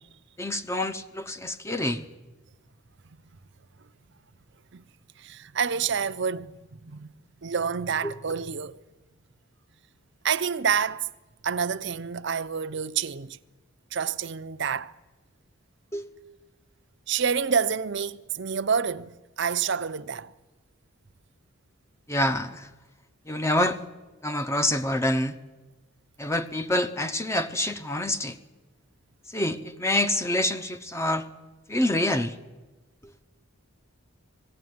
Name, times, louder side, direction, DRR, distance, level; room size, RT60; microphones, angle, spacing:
voice 1, 0.4-2.0 8.0-8.1 15.9-16.1 22.1-22.7 23.3-23.8 24.2-25.3 26.2-28.4 29.3-31.3 31.7-32.3, left 1 dB, 10° left, 0.7 m, -26 dB
voice 2, 5.2-8.8 10.2-11.1 11.4-13.4 13.9-14.9 17.1-20.3, right 6 dB, 55° right, 0.6 m, -28 dB
20.0 x 16.0 x 9.3 m
head